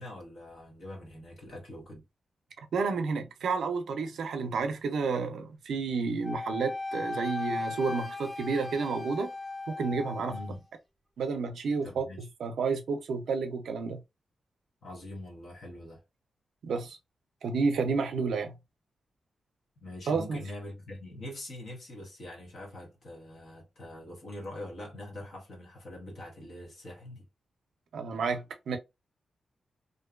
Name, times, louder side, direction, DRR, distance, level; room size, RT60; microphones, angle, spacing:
voice 1, 0.0-2.0 10.3-10.6 11.8-12.3 14.8-16.0 19.8-27.2, left 1 dB, 60° left, 0.9 m, -43 dB
voice 2, 2.7-9.3 9.7-10.4 11.2-14.0 16.6-17.0 17.4-18.6 20.1-20.4 27.9-28.8, right 4 dB, 85° right, 0.4 m, -31 dB
Wind instrument woodwind instrument, 6.2-10.5, left 2 dB, 15° left, 1.0 m, -37 dB
2.6 x 2.2 x 2.2 m
wide cardioid pair, 175°, 0 cm